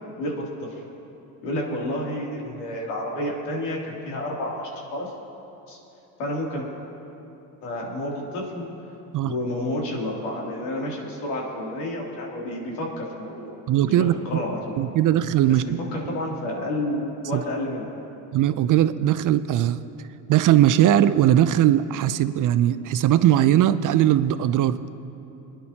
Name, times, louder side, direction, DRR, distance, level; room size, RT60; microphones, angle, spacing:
voice 1, 1.4-5.1 5.7-5.8 6.2-6.7 7.6-8.7 9.2-13.5 13.9-14.8 15.5-17.9, left 1 dB, 85° left, -3 dB, 3.0 m, -30 dB
voice 2, 13.7-14.4 14.8-15.8 17.3-17.4 18.3-19.8 20.3-24.8, right 12 dB, 45° right, 13 dB, 0.5 m, -19 dB
26.0 x 10.5 x 2.9 m, 2.9 s
supercardioid pair, 85°, 46 cm